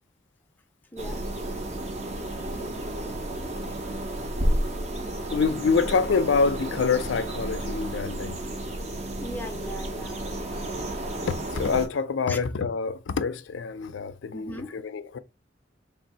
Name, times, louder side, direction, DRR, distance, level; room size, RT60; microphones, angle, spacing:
voice 1, 0.9-1.2 3.7-3.8 9.2-10.3 12.3-12.5 14.3-14.8, equal, 10° left, 0.5 m, -38 dB
sound 1, 1.0-11.9, right 1 dB, 35° right, 0.7 m, -32 dB
voice 2, 5.3-8.4 10.7-10.9 11.3-15.2, left 5 dB, 85° left, 0.4 m, -26 dB
3.3 x 2.6 x 4.1 m
head